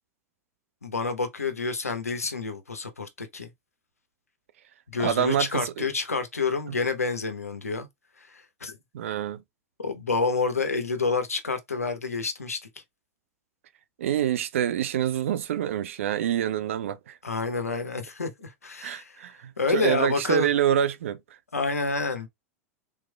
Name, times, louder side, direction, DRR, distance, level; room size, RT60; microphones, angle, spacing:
voice 1, 0.8-3.5 4.9-7.9 8.2-8.8 9.8-12.6 17.2-19.3 19.6-20.5 21.5-22.3, left 4 dB, 80° left, 0.8 m, -28 dB
voice 2, 5.0-5.9 8.9-9.4 14.0-17.2 18.8-21.2, right 10 dB, 60° right, 0.4 m, -26 dB
3.5 x 3.1 x 2.2 m
figure-of-eight pair, 90°, 8 cm